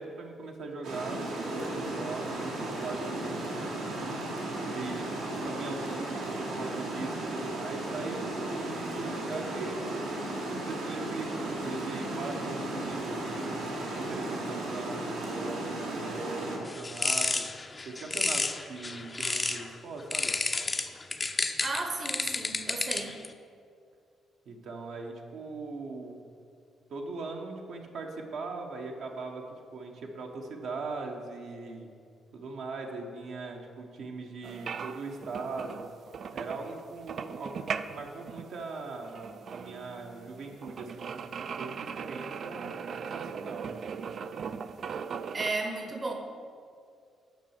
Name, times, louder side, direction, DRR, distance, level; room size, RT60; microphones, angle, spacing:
voice 1, 0.0-3.9 4.6-13.5 14.0-15.7 15.9-17.5 17.8-20.4 24.5-26.3 26.9-29.4 29.7-31.9 32.3-35.9 36.3-42.7 43.0-43.7, right 3 dB, 70° right, 1 dB, 1.1 m, -40 dB
Water, 0.8-16.6, right 2 dB, 90° right, 2.0 m, -35 dB
sound 1, 16.6-19.7 20.1-23.3, left 3 dB, 25° left, 0.5 m, -31 dB
voice 2, 21.6-23.2 45.3-46.1, right 3 dB, 30° right, 4 dB, 0.9 m, -34 dB
sound 2, 34.4-45.5, right 6 dB, 55° right, 0.3 m, -39 dB
7.4 x 5.4 x 7.3 m, 2.3 s
cardioid pair, 90°, 0 cm